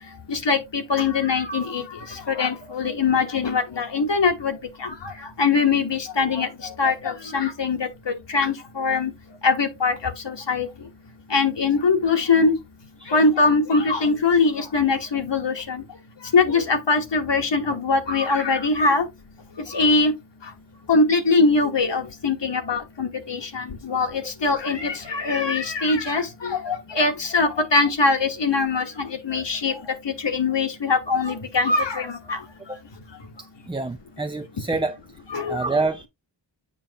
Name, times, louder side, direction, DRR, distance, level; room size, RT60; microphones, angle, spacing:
voice 1, 0.3-1.8 2.3-4.6 4.8-4.9 5.4-6.5 6.8-9.1 9.4-9.9 10.2-10.7 11.3-12.6 13.1-15.8 16.3-19.0 19.7-20.1 20.9-29.7 30.2-32.4 35.3-35.6, left 4 dB, 70° left, 1.3 m, -22 dB
voice 2, 33.7-35.0 35.5-36.1, right 3 dB, 10° right, 0.4 m, -26 dB
7.4 x 5.1 x 2.9 m
wide cardioid pair, 60°, 45 cm